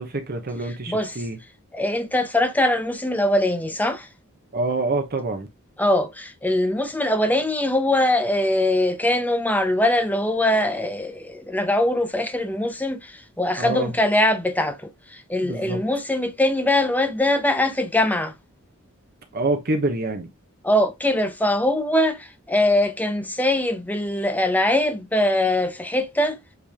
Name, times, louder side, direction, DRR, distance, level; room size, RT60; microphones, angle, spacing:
voice 1, 0.0-1.4 4.5-5.5 13.6-13.9 15.4-15.8 19.3-20.3, right 2 dB, 45° right, 1.0 m, -26 dB
voice 2, 0.6-1.2 1.7-4.1 5.8-18.3 20.6-26.4, left 1 dB, 10° left, 0.9 m, -22 dB
8.0 x 3.3 x 3.5 m
head